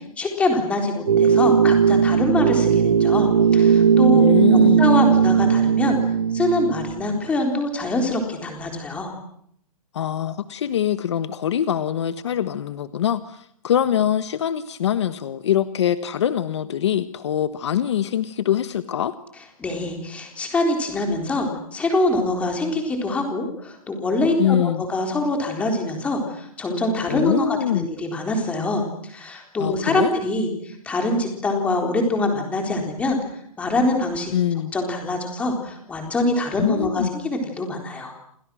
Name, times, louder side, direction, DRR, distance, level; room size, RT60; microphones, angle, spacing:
voice 1, 0.2-4.2 4.5-6.0 6.3-9.1 19.6-33.2 33.6-34.3 34.7-38.1, left 2 dB, 5° left, 3 dB, 3.9 m, -24 dB
sound 1, 1.1-7.1, right 7 dB, 75° right, 1.3 m, -17 dB
voice 2, 4.1-4.8 9.9-19.1 24.4-24.8 27.1-27.9 29.6-30.1 34.3-34.7 36.6-37.1, left 10 dB, 50° left, 12 dB, 1.3 m, -23 dB
29.5 x 27.5 x 6.3 m, 0.70 s
hypercardioid pair, 175°, 19 cm